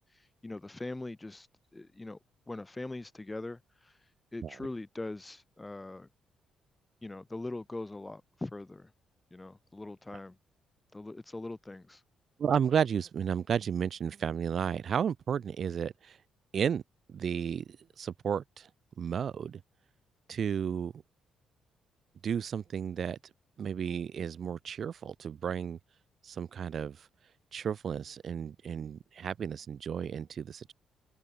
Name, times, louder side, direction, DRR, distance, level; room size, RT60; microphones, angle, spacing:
voice 1, 0.1-1.5 1.7-2.2 2.5-4.0 4.3-6.1 7.0-8.9 9.3-10.4 10.9-12.0, left 2 dB, 15° left, 4.4 m, -41 dB
voice 2, 12.4-16.2 16.5-16.8 17.1-17.7 18.0-18.7 19.0-19.6 20.3-20.9 22.2-23.2 23.6-25.8 26.2-27.1 27.5-30.7, right 7 dB, 55° right, 0.8 m, -32 dB
open air
cardioid pair, 90°, 0 cm